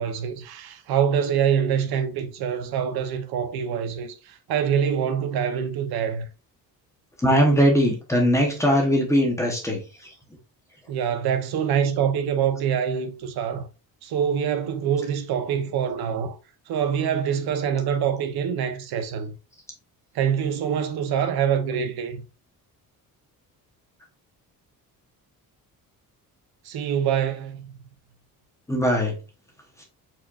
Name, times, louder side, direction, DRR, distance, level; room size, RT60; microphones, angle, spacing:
voice 1, 0.0-6.3 10.9-13.7 14.0-16.4 16.7-19.3 20.1-22.2 26.6-27.7, right 8 dB, 80° right, 0.8 m, -25 dB
voice 2, 7.2-9.8 28.7-29.1, equal, 10° left, 0.9 m, -20 dB
4.6 x 4.4 x 2.4 m
cardioid pair, 180°, 37 cm